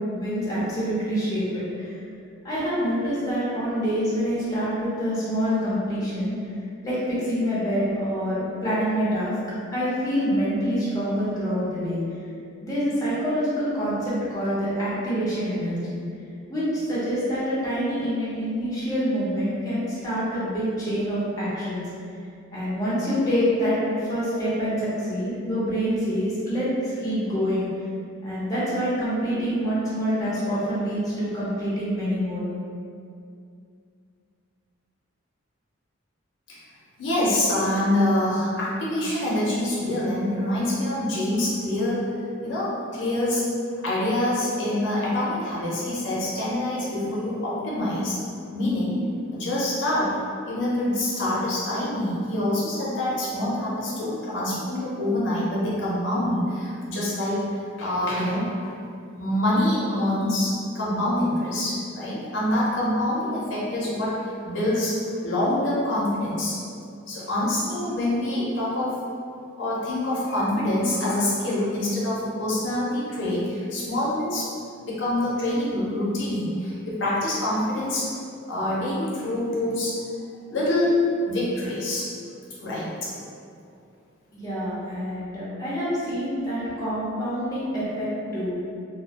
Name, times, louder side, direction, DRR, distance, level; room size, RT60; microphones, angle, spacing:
voice 1, 0.1-1.9 2.4-6.3 6.8-9.3 9.7-12.0 12.6-16.0 16.5-21.9 22.5-27.7 28.2-32.4 84.3-88.6, equal, 15° left, -10 dB, 0.5 m, -26 dB
voice 2, 37.0-42.0 42.4-43.4 43.8-48.2 48.5-49.0 49.3-50.2 50.5-57.4 57.8-58.7 59.2-66.6 67.1-69.0 69.6-74.5 74.9-78.1 78.5-80.0 80.5-82.1 82.6-83.1, left 1 dB, 60° left, -7 dB, 0.6 m, -25 dB
2.3 x 2.1 x 2.8 m, 2.4 s
head